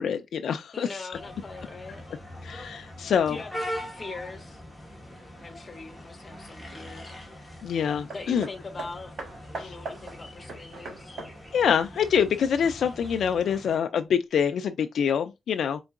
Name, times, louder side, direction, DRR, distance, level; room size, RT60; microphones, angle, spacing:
voice 1, 0.0-0.9 2.4-3.4 7.6-8.5 9.6-9.7 11.5-15.8, left 7 dB, 70° left, 0.3 m, -25 dB
voice 2, 0.7-2.0 3.3-4.6 5.4-7.1 7.4-7.5 8.1-9.1 9.5-11.2, left 3 dB, 25° left, 0.9 m, -42 dB
sound 1, 1.1-13.8, equal, 5° right, 1.4 m, -42 dB
Hammer, 8.1-12.8 13.7-13.8, right 3 dB, 80° right, 1.1 m, -41 dB
4.4 x 3.8 x 2.4 m
wide cardioid pair, 170°, 0 cm